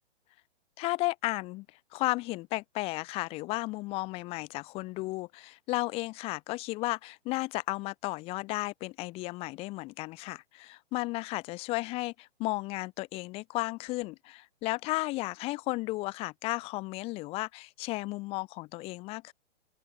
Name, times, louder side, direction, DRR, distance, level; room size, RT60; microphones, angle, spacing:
voice 1, 0.8-1.7 1.9-19.3, left 21 dB, 15° left, 5.3 m, -34 dB
open air
hypercardioid pair, 175°, 33 cm